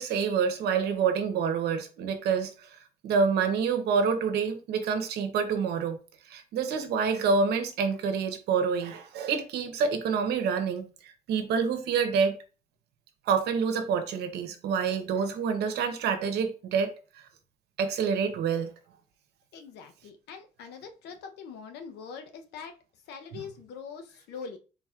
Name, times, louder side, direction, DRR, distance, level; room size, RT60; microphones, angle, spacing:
voice 1, 0.0-6.0 6.2-12.4 13.3-17.2 17.8-18.7 23.3-23.4, right 6 dB, 75° right, 0.9 m, -27 dB
voice 2, 19.5-22.7 23.1-24.6, left 6 dB, 80° left, 0.8 m, -43 dB
4.3 x 3.9 x 2.4 m
cardioid pair, 110°, 17 cm